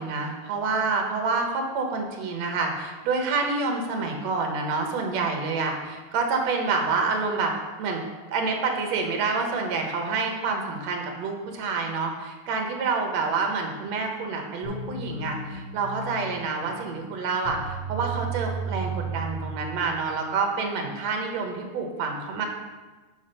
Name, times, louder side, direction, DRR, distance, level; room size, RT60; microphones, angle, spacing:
voice 1, 0.0-7.5 7.8-8.0 8.3-22.5, right 4 dB, 65° right, 2 dB, 2.2 m, -28 dB
sound 1, 14.6-20.2, right 4 dB, 45° left, 3.5 m, -34 dB
7.2 x 6.9 x 5.5 m, 1.3 s
omnidirectional pair, 3.5 m